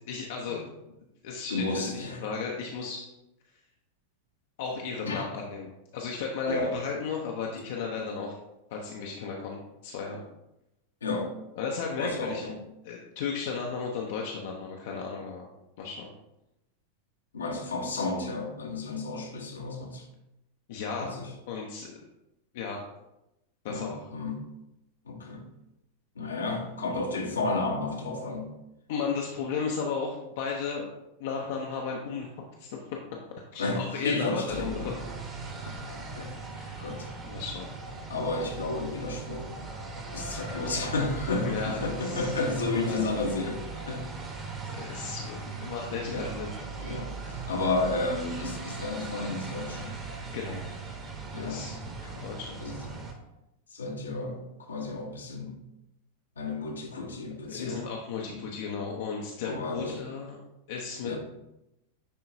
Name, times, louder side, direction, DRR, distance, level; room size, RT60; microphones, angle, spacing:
voice 1, 0.1-0.6 1.2-3.0 4.6-8.3 8.7-10.2 11.6-12.5 12.8-15.5 15.8-16.1 20.7-21.2 21.5-22.0 22.5-22.8 23.6-24.0 28.9-30.9 31.2-33.0 33.5-35.3 36.5-36.9 37.2-37.7 41.4-42.3 42.8-43.0 44.7-46.5 50.3-50.6 51.4-51.8 52.2-52.6 57.4-60.4 60.7-61.2, left 5 dB, 55° left, 0 dB, 0.7 m, -35 dB
voice 2, 1.5-2.2 5.0-5.3 6.4-6.8 11.0-11.3 12.0-12.6 17.3-20.1 21.0-21.3 23.7-24.4 25.1-25.4 26.1-28.5 33.6-34.9 36.2-36.4 36.8-37.1 38.1-39.5 40.1-44.1 46.0-46.3 46.8-49.9 51.3-51.6 52.1-52.3 52.6-53.0 53.7-55.6 56.4-57.9 58.2-58.4 59.4-60.0 61.0-61.2, left 3 dB, 70° left, 1 dB, 1.1 m, -32 dB
sound 1, 34.5-53.1, right 4 dB, 25° right, 1.2 m, -39 dB
10.0 x 3.8 x 2.7 m, 0.91 s
figure-of-eight pair, 90°, 0 cm